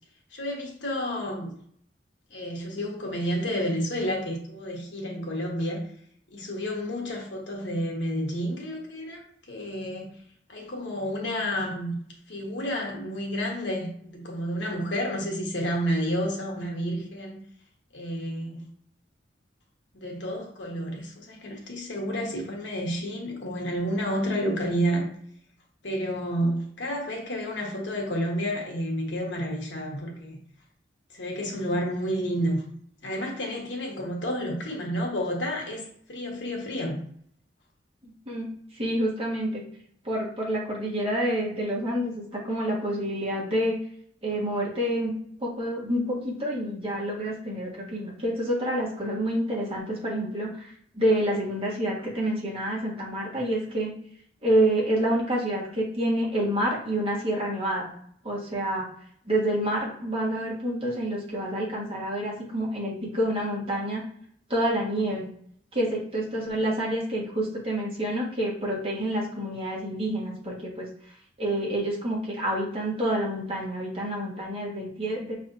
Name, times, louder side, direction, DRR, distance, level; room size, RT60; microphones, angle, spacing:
voice 1, 0.3-1.5 2.3-5.8 6.3-10.1 10.5-12.0 12.3-17.4 17.9-18.7 19.9-25.1 25.8-30.4 31.1-32.6 33.0-37.0, equal, 85° left, -1 dB, 1.3 m, -30 dB
voice 2, 38.8-39.6 40.0-43.8 44.2-45.1 45.4-53.9 54.4-57.9 58.2-58.8 59.2-64.0 64.5-65.3 65.7-70.9 71.4-75.4, right 1 dB, 35° right, -4 dB, 1.5 m, -28 dB
5.8 x 3.4 x 2.6 m, 0.64 s
head